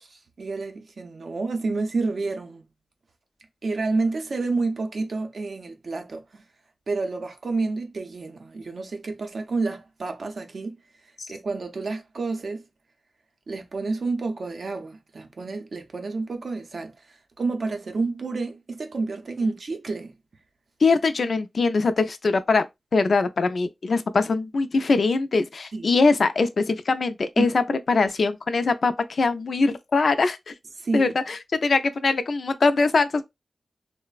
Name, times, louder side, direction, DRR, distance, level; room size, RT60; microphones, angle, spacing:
voice 1, 0.4-2.6 3.6-6.4 6.9-10.8 11.3-12.6 13.5-16.9 17.4-20.1 25.7-25.9 27.4-27.5 30.8-31.1, right 3 dB, 55° right, 0.5 m, -29 dB
voice 2, 20.8-22.7 22.9-30.5 30.9-33.2, left 4 dB, 55° left, 0.3 m, -22 dB
3.1 x 2.0 x 2.2 m
wide cardioid pair, 155°, 0 cm